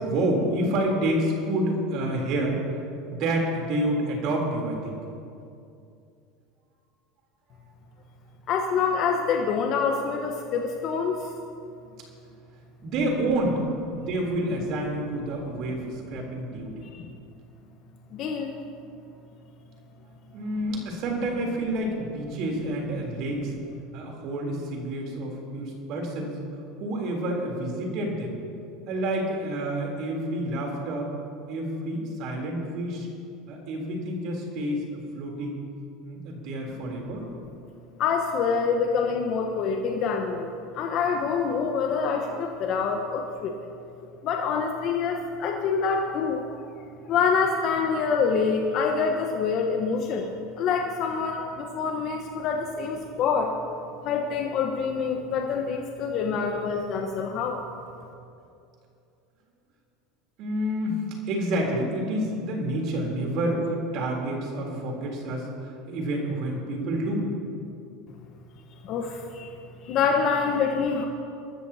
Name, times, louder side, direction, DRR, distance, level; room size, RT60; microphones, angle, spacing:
voice 1, 0.0-2.6 3.1-5.0 12.8-13.6 13.9-16.7 20.3-23.5 23.9-26.3 26.8-28.3 28.9-31.1 31.5-33.1 33.5-35.6 36.0-37.3 60.4-67.3, right 1 dB, 60° right, 0 dB, 3.6 m, -28 dB
voice 2, 8.5-11.3 16.9-17.2 18.1-18.5 38.0-43.6 44.2-46.4 47.1-50.3 50.6-53.5 54.0-57.7 68.8-69.6 69.8-71.0, left 5 dB, 50° left, 2 dB, 1.2 m, -26 dB
22.5 x 13.5 x 2.9 m, 2.5 s
hypercardioid pair, 90°, 0 cm